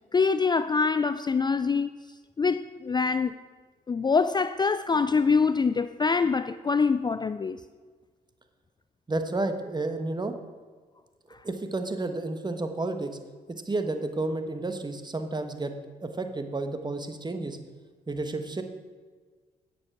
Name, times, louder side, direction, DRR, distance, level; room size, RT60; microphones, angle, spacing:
voice 1, 0.1-1.9 2.4-3.3 3.9-7.6, left 5 dB, 25° left, 0.4 m, -24 dB
voice 2, 9.1-10.3 11.4-13.1 13.6-15.7 16.0-17.6 18.1-18.6, right 2 dB, 25° right, 1.2 m, -31 dB
9.7 x 7.1 x 5.9 m
supercardioid pair, 60°, 17 cm